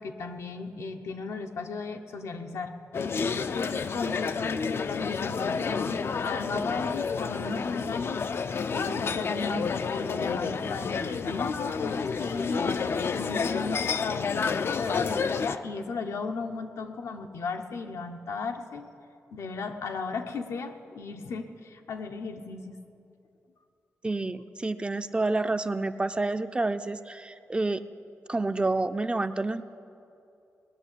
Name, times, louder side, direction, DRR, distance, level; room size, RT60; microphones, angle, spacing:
voice 1, 0.0-2.7 3.2-8.2 8.7-18.9 19.3-22.8, left 4 dB, 85° left, 5 dB, 1.0 m, -35 dB
sound 1, 2.9-15.6, left 5 dB, 55° left, 0.5 m, -30 dB
voice 2, 24.0-27.8 28.3-29.6, right 2 dB, 20° right, 10 dB, 0.5 m, -28 dB
19.0 x 6.7 x 9.9 m, 2.6 s
cardioid pair, 100°, 5 cm